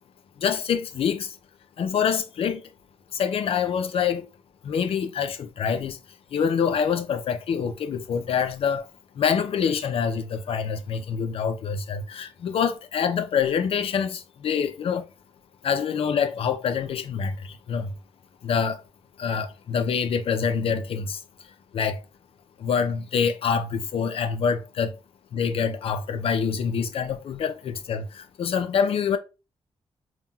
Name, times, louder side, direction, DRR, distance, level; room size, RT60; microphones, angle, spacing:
voice 1, 0.4-1.3 1.8-2.6 3.1-4.2 4.6-6.0 6.3-8.8 9.2-15.0 15.6-17.4 17.7-17.9 18.4-18.8 19.2-21.2 21.7-22.0 22.6-24.9 25.3-29.2, left 7 dB, 65° left, 0.5 m, -26 dB
5.5 x 2.3 x 2.3 m
wide cardioid pair, 175°, 10 cm